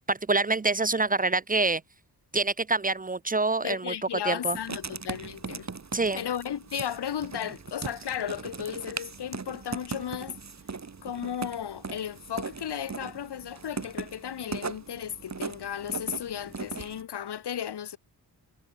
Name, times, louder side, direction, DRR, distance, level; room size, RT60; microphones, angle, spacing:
voice 1, 0.1-1.8 2.3-3.9 4.2-4.6 5.9-6.2, right 3 dB, 20° right, 0.5 m, -26 dB
voice 2, 3.6-5.7 6.1-10.4 11.0-18.0, left 9 dB, 85° left, 1.9 m, -34 dB
Writing, 4.5-17.0, right 4 dB, 45° right, 5.5 m, -39 dB
wide cardioid pair, 105°, 39 cm